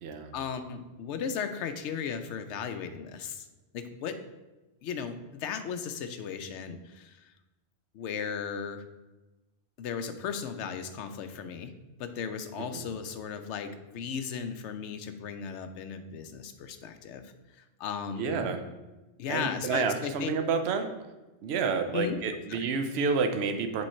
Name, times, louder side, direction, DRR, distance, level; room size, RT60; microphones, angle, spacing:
voice 1, 0.3-3.5 3.7-4.2 4.8-7.3 7.9-8.8 9.8-11.7 12.0-18.4 19.2-20.3 21.9-22.2 22.5-22.6, left 7 dB, 80° left, 8 dB, 0.9 m, -36 dB
voice 2, 18.2-18.6 19.3-20.9 21.4-23.9, right 5 dB, 65° right, 7 dB, 0.9 m, -29 dB
7.6 x 3.2 x 4.2 m, 1.1 s
omnidirectional pair, 1.2 m